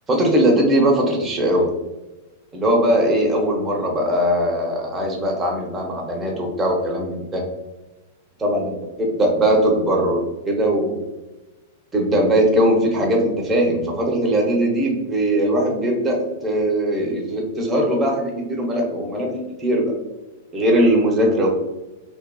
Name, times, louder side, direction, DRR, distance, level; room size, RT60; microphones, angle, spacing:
voice 1, 0.1-1.7 2.5-7.4 8.4-11.0 11.9-19.9 20.5-21.5, right 1 dB, 20° right, 0 dB, 0.6 m, -20 dB
2.4 x 2.4 x 2.2 m, 1.1 s
hypercardioid pair, 115°, 0 cm